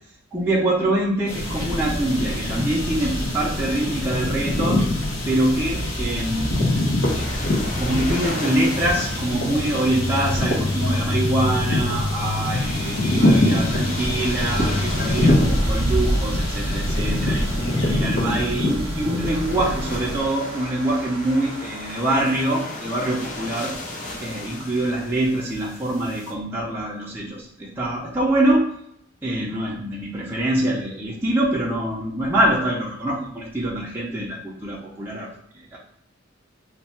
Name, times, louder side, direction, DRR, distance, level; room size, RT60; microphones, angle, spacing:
voice 1, 0.3-4.9 5.2-6.9 7.8-17.5 17.9-23.7 24.2-28.6 29.2-35.3 35.7-35.8, right 1 dB, 10° right, -6 dB, 0.5 m, -24 dB
sound 1, 1.3-20.2, left 1 dB, 85° left, 1.0 m, -23 dB
sound 2, 7.0-26.3, left 2 dB, 40° left, 0.7 m, -37 dB
sound 3, 14.4-23.0 23.4-23.5, right 7 dB, 70° right, 0.4 m, -41 dB
3.2 x 2.3 x 4.3 m, 0.72 s
head